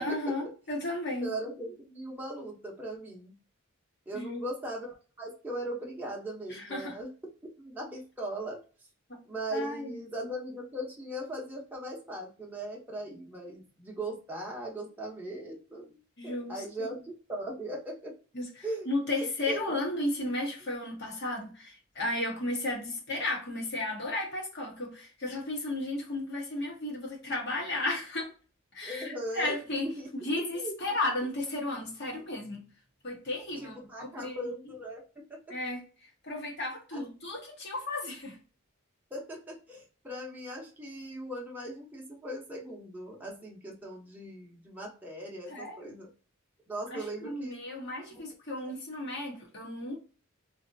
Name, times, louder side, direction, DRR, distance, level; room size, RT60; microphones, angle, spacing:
voice 1, 0.0-1.3 4.1-4.4 6.5-7.0 9.1-9.2 9.5-10.1 16.2-16.9 18.3-18.5 18.9-28.3 28.7-32.7 33.0-34.5 35.5-35.8 36.2-38.4 45.5-45.8 46.9-50.0, left 2 dB, 50° left, 1.4 m, -34 dB
voice 2, 1.2-3.3 4.1-7.1 7.6-8.6 9.2-18.1 18.6-18.9 19.5-19.8 28.8-30.1 30.5-30.7 33.6-35.0 35.3-35.5 36.9-37.0 39.1-46.1 46.7-47.6 48.1-48.2 48.6-48.7, right 1 dB, 10° right, 0.9 m, -39 dB
3.2 x 2.8 x 2.6 m
head